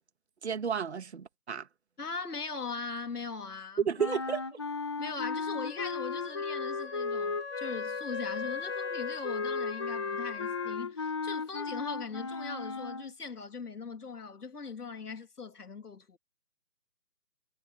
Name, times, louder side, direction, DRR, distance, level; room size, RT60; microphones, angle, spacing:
voice 1, 0.4-1.7 3.9-4.6, right 7 dB, 45° right, 2.0 m, -33 dB
voice 2, 2.0-3.9 5.0-16.2, left 4 dB, 75° left, 2.5 m, -40 dB
sound 1, 4.0-13.1, left 4 dB, 20° left, 1.2 m, -35 dB
Wind instrument woodwind instrument, 5.6-10.8, left 5 dB, 45° left, 4.6 m, -41 dB
figure-of-eight pair, 170°, 46 cm